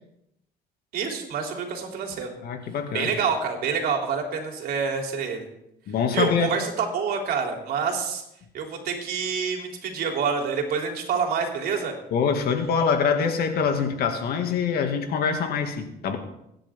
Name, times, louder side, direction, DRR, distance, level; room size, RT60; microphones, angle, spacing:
voice 1, 0.9-2.3 2.9-5.5 6.1-8.2 8.5-11.9, right 6 dB, 65° right, 2 dB, 3.5 m, -27 dB
voice 2, 2.4-3.1 5.9-6.5 12.1-16.2, left 6 dB, 65° left, 5 dB, 2.3 m, -24 dB
24.5 x 10.5 x 3.7 m, 0.81 s
cardioid pair, 110°, 17 cm